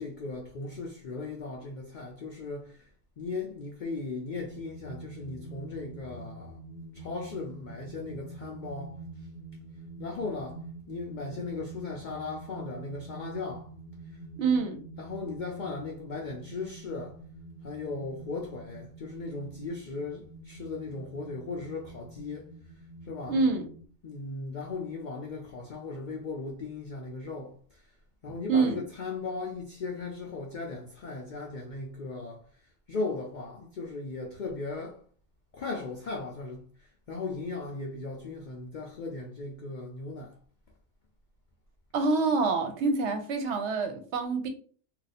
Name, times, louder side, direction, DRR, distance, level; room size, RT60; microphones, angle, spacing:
voice 1, 0.0-2.9 3.2-6.5 6.9-9.0 10.0-13.7 15.0-17.2 17.6-22.5 23.0-23.4 24.0-27.8 28.2-32.4 32.9-35.0 35.5-36.6 37.1-40.4, left 3 dB, 80° left, 0.4 m, -37 dB
sound 1, 4.5-23.9, right 2 dB, 55° left, 0.8 m, -46 dB
voice 2, 14.4-14.8 23.3-23.7 28.5-28.8 41.9-44.5, right 4 dB, 65° right, 0.8 m, -26 dB
2.5 x 2.2 x 4.0 m
omnidirectional pair, 1.4 m